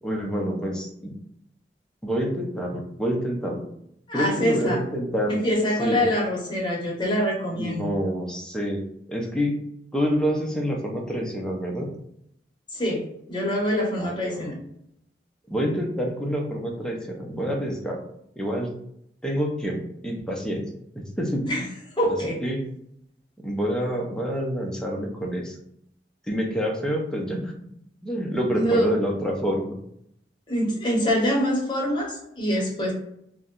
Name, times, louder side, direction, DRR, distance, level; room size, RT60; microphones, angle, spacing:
voice 1, 0.0-1.1 2.0-3.6 4.1-5.4 5.8-6.0 7.5-8.8 9.1-9.6 9.9-11.9 14.0-14.5 15.5-18.0 18.4-18.7 19.2-20.6 21.0-21.5 22.1-22.2 22.4-22.6 23.4-25.6 26.3-27.5 28.0-29.8, equal, 5° left, 0 dB, 0.5 m, -27 dB
voice 2, 4.1-4.8 5.3-7.9 12.7-14.6 21.5-21.6 22.0-22.3 28.5-28.9 30.5-32.9, equal, 25° left, -3 dB, 0.9 m, -25 dB
2.6 x 2.1 x 3.7 m, 0.74 s
head